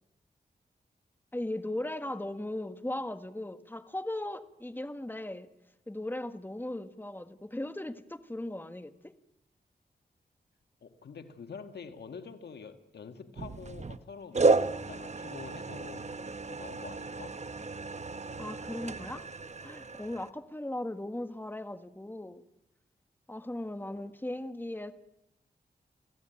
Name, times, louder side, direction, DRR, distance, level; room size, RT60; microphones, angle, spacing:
voice 1, 1.3-5.5 5.9-9.1 18.4-19.3 19.6-22.4 23.3-24.9, left 1 dB, 10° left, 9 dB, 1.7 m, -38 dB
voice 2, 10.8-14.4 14.7-16.1 16.5-17.4, left 5 dB, 90° left, 8 dB, 1.7 m, -46 dB
sound 1, 13.3-14.0 14.3-20.3, right 3 dB, 45° right, 1.0 m, -32 dB
29.0 x 16.5 x 9.1 m, 0.86 s
cardioid pair, 55°, 17 cm